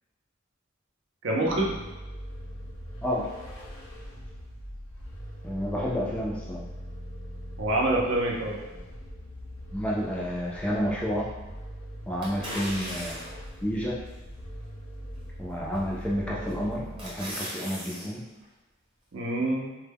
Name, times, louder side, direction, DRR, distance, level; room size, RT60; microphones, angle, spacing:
voice 1, 1.2-1.8 7.6-8.6 19.1-19.8, right 1 dB, 65° right, -2 dB, 0.6 m, -26 dB
Vehicle, 1.4-17.3, equal, 80° left, 0.6 m, -41 dB
voice 2, 5.4-6.6 9.7-11.3 12.1-13.2 13.6-13.9 15.4-18.2, equal, 5° left, -5 dB, 0.3 m, -30 dB
sound 1, 12.2-13.5 14.1-14.2 15.7-16.1 16.5-18.1 18.4-18.5, equal, 25° right, 0.8 m, -37 dB
2.1 x 2.1 x 3.3 m, 1.1 s
head